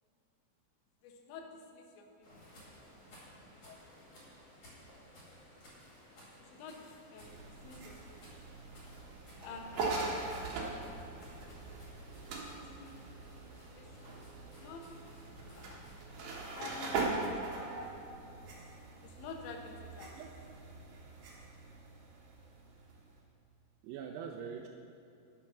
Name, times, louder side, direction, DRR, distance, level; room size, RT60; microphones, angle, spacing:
voice 1, 1.0-2.8 3.6-3.8 6.4-8.3 9.4-10.3 12.5-13.0 13.7-14.1 14.6-14.8 15.1-15.5 16.5-17.8 19.0-20.2, left 4 dB, 85° left, 3 dB, 3.2 m, -49 dB
sound 1, 2.2-16.0, equal, 40° left, 2.9 m, -57 dB
sound 2, 7.2-23.2, right 3 dB, 65° right, 2.5 m, -41 dB
voice 2, 12.3-13.1 20.2-20.3 23.8-24.7, right 7 dB, 85° right, 3 dB, 2.4 m, -45 dB
8.7 x 7.3 x 5.9 m, 2.9 s
omnidirectional pair, 5.0 m